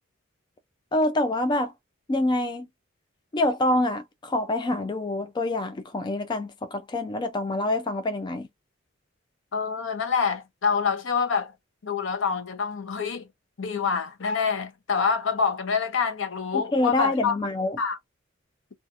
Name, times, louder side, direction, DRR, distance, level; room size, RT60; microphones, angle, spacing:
voice 1, 0.9-1.7 2.1-2.7 3.3-8.5 16.5-17.8, left 1 dB, 20° left, 0.3 m, -26 dB
voice 2, 9.5-11.5 11.8-13.3 13.6-17.3 17.8-18.0, left 5 dB, 70° left, 0.6 m, -26 dB
2.6 x 2.4 x 2.4 m
head